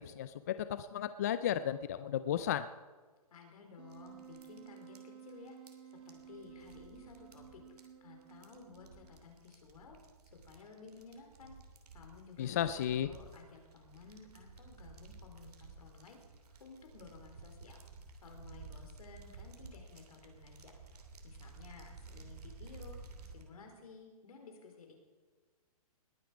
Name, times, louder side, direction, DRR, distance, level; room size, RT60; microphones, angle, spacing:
voice 1, 0.0-2.7 12.4-13.1, left 10 dB, 25° left, 13 dB, 0.3 m, -34 dB
voice 2, 3.3-5.7 6.1-10.0 10.2-11.6 11.9-16.2 16.6-17.8 18.2-20.7 21.2-23.0 23.2-24.9, left 4 dB, 65° left, 3 dB, 4.3 m, -55 dB
Wind instrument woodwind instrument, 3.8-9.2, right 8 dB, 40° right, 2.6 m, -54 dB
sound 1, 3.9-23.4, right 3 dB, 75° right, 2.9 m, -54 dB
20.5 x 9.3 x 5.1 m, 1.4 s
hypercardioid pair, 160°, 20 cm